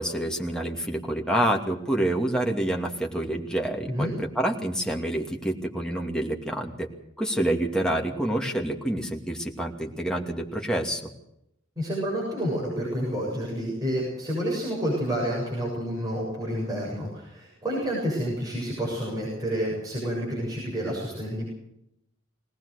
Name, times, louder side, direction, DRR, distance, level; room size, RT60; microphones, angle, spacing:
voice 1, 0.0-6.9 7.2-11.0, right 1 dB, 5° left, 1 dB, 2.5 m, -27 dB
voice 2, 11.8-21.5, equal, 20° right, -4 dB, 7.5 m, -29 dB
21.0 x 19.0 x 6.6 m, 0.80 s
head